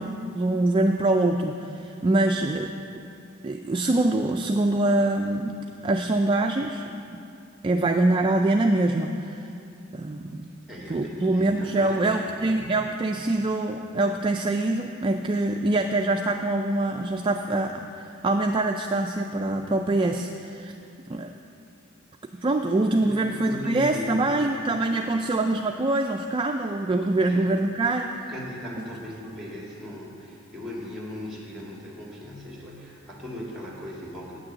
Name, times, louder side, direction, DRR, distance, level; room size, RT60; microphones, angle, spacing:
voice 1, 0.0-2.7 3.4-5.6 5.8-7.2 7.6-9.5 9.9-10.5 10.9-20.7 21.1-21.3 22.3-28.1, right 2 dB, 25° right, 3 dB, 0.3 m, -24 dB
voice 2, 10.7-12.8 22.4-24.5 24.9-25.3 27.2-27.5 28.3-34.4, left 1 dB, ahead, -4 dB, 1.9 m, -38 dB
8.9 x 6.3 x 7.6 m, 2.7 s
head